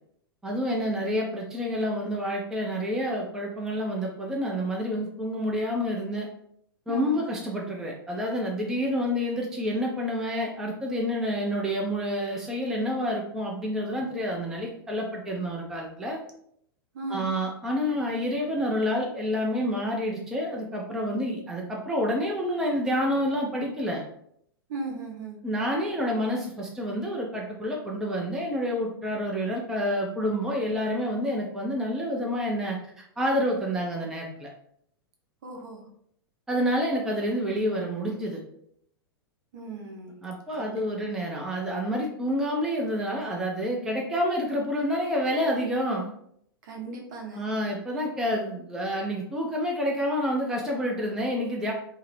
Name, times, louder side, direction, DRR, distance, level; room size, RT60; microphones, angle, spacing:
voice 1, 0.4-6.3 6.9-16.2 17.1-24.0 25.4-34.5 36.5-38.4 40.2-46.1 47.3-51.7, equal, 5° right, -2 dB, 0.4 m, -28 dB
voice 2, 6.9-7.2 16.9-17.3 24.7-25.4 35.4-35.8 39.5-40.2 40.6-41.0 46.6-47.5, right 3 dB, 50° right, 0 dB, 0.8 m, -37 dB
2.6 x 2.0 x 3.1 m, 0.70 s
figure-of-eight pair, 100°, 13 cm